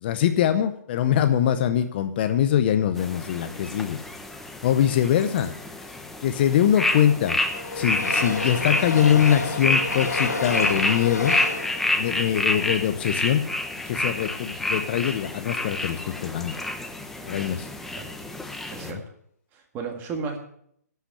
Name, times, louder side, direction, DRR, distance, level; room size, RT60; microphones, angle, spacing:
voice 1, 0.0-4.0 4.6-5.5 5.8-5.9 6.2-7.4 7.7-11.4 12.0-13.5 13.9-16.6 17.2-17.7 18.8-19.0, left 10 dB, 35° left, 9 dB, 0.7 m, -23 dB
sound 1, 3.0-18.9, left 2 dB, 5° left, 0.8 m, -29 dB
Train, 6.2-13.5 14.0-14.1 14.3-14.4, left 3 dB, 80° left, 3.2 m, -31 dB
voice 2, 19.5-20.4, right 5 dB, 20° right, 4 dB, 1.8 m, -33 dB
11.5 x 5.8 x 8.5 m, 0.69 s
hypercardioid pair, 145°, 9 cm